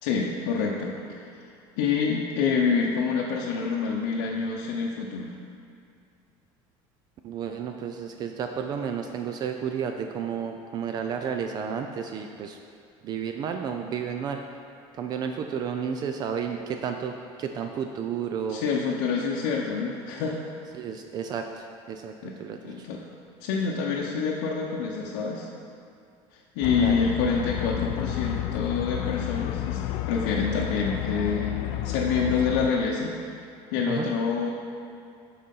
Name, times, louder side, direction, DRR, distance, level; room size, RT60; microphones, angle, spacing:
voice 1, 0.0-1.5 1.8-5.3 18.5-20.4 22.2-23.0 23.4-25.5 26.6-29.8 30.1-33.2 33.7-34.5, left 5 dB, 90° left, -2 dB, 0.7 m, -27 dB
voice 2, 7.2-12.6 13.0-14.4 15.0-18.6 20.7-22.1 22.4-22.9 26.8-27.1 33.9-34.1, right 7 dB, 35° right, 5 dB, 0.4 m, -32 dB
sound 1, 26.6-32.7, left 14 dB, 65° left, 0.4 m, -31 dB
7.6 x 4.2 x 5.3 m, 2.4 s
cardioid pair, 160°, 12 cm